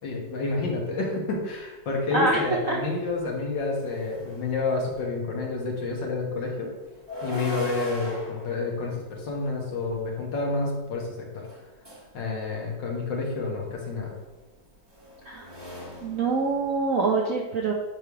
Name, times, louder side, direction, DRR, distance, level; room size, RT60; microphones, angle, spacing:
voice 1, 0.0-6.7 7.2-11.4 12.1-14.1, left 3 dB, 65° left, -1 dB, 2.0 m, -29 dB
sound 1, 3.0-5.0 6.8-10.1 11.4-12.1 13.6-17.0, left 1 dB, 20° right, 0.9 m, -40 dB
voice 2, 16.0-17.7, right 3 dB, 65° right, 0 dB, 0.8 m, -25 dB
8.7 x 3.4 x 4.6 m, 1.2 s
omnidirectional pair, 2.1 m